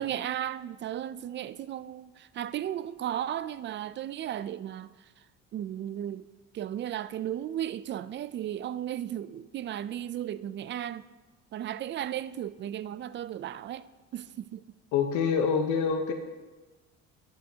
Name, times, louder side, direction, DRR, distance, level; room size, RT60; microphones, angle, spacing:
voice 1, 0.0-4.9 5.5-6.3 6.5-11.0 11.5-13.9 14.1-14.6, right 11 dB, 40° right, 0.4 m, -35 dB
voice 2, 14.9-16.1, left 6 dB, 85° left, 0.9 m, -26 dB
20.0 x 7.9 x 2.8 m
cardioid pair, 125°, 29 cm